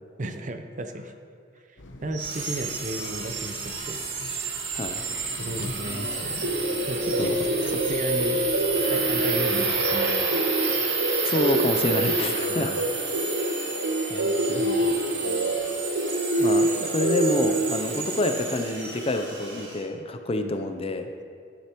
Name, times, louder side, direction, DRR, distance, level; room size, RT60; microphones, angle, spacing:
voice 1, 0.2-1.1 2.0-4.0 5.4-6.5 6.9-7.5 7.7-8.4 8.9-10.4 12.4-12.8 13.1-13.4 14.1-15.0 17.9-18.0 20.3-20.5, right 1 dB, 40° right, 7 dB, 0.6 m, -34 dB
sound 1, 1.8-9.8, left 1 dB, 70° left, 0.9 m, -44 dB
sound 2, 2.1-19.8, right 4 dB, 65° right, 2.1 m, -30 dB
sound 3, 6.4-17.7, right 1 dB, 85° right, 0.8 m, -26 dB
voice 2, 11.2-12.8 13.7-13.9 16.4-21.1, left 2 dB, 30° left, 7 dB, 0.5 m, -27 dB
11.5 x 9.8 x 3.0 m, 2.3 s
head